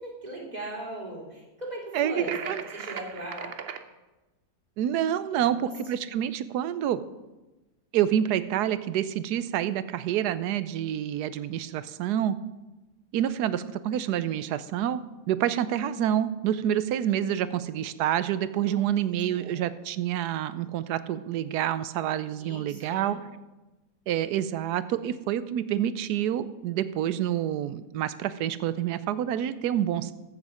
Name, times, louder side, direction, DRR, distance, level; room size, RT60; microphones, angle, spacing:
voice 1, 0.0-3.5 5.3-5.7 18.6-18.9 19.3-19.6 22.4-23.1, right 1 dB, 25° right, -2 dB, 2.7 m, -39 dB
voice 2, 1.9-2.6 4.8-7.0 7.9-12.4 13.1-15.0 15.3-23.2 24.1-30.1, right 10 dB, 85° right, 14 dB, 1.2 m, -28 dB
sound 1, 2.2-3.8, right 7 dB, 55° right, 0.7 m, -38 dB
15.0 x 7.3 x 4.9 m, 1.1 s
omnidirectional pair, 1.7 m